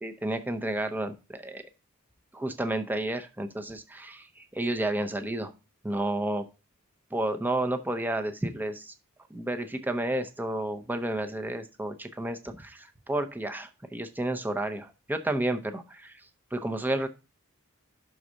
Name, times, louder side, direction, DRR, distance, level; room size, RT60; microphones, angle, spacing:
voice 1, 0.0-1.6 2.3-5.5 5.8-6.4 7.1-8.9 9.3-16.1 16.5-17.1, right 1 dB, 10° right, 7 dB, 0.6 m, -31 dB
6.2 x 4.0 x 6.1 m, 0.29 s
head